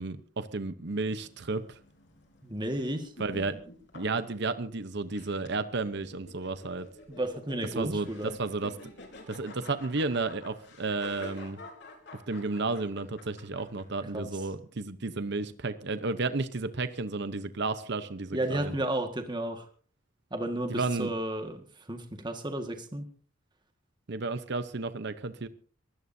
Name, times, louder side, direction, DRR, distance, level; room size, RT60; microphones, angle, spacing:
voice 1, 0.0-1.8 3.2-3.5 3.9-6.9 7.8-8.7 9.3-11.6 12.3-18.7 20.7-21.1 24.1-25.5, right 3 dB, 55° right, 12 dB, 0.9 m, -32 dB
sound 1, 0.9-14.5, left 2 dB, 55° left, 4.3 m, -50 dB
voice 2, 2.4-3.1 7.1-8.4 14.1-14.3 18.3-19.7 20.3-23.1, right 1 dB, 20° right, 5 dB, 1.7 m, -33 dB
23.5 x 16.5 x 2.7 m, 0.43 s
head